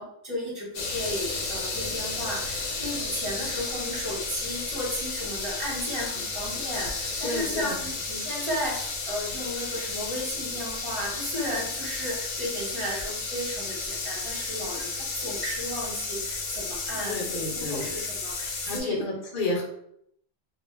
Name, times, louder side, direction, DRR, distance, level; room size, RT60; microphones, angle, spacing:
voice 1, 0.0-7.8 8.1-19.0, equal, 25° right, -4 dB, 0.9 m, -34 dB
sound 1, 0.7-18.8, left 3 dB, 80° left, 0.9 m, -33 dB
voice 2, 7.2-7.9 17.1-17.9 18.6-19.6, left 2 dB, 50° left, -1 dB, 0.8 m, -31 dB
2.3 x 2.0 x 3.1 m, 0.72 s
omnidirectional pair, 1.2 m